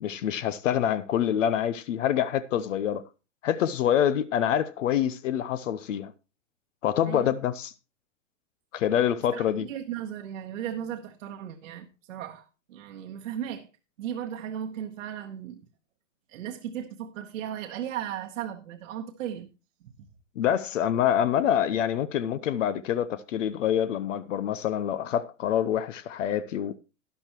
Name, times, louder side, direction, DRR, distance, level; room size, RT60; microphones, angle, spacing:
voice 1, 0.0-3.0 3.4-6.1 6.8-7.7 8.7-9.7 20.4-26.8, left 10 dB, 70° left, 0.8 m, -26 dB
voice 2, 9.3-13.7 14.0-15.6 16.3-19.5 19.8-19.9, right 10 dB, 75° right, 1.2 m, -36 dB
12.5 x 10.5 x 3.0 m
hypercardioid pair, 120°, 39 cm